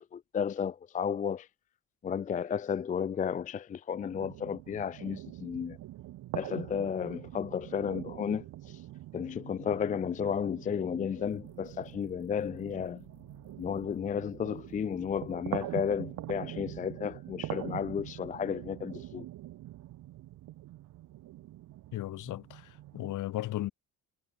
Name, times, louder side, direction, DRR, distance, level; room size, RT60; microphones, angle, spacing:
voice 1, 0.0-1.5 2.0-5.8 6.3-8.8 9.1-13.0 13.6-19.2, left 7 dB, 25° left, 0.5 m, -33 dB
sound 1, 4.0-23.2, right 15 dB, 60° right, 2.6 m, -44 dB
sound 2, 11.2-16.8, left 17 dB, 80° left, 7.6 m, -61 dB
voice 2, 21.9-23.7, left 15 dB, 60° left, 2.0 m, -36 dB
cardioid pair, 160°, 35 cm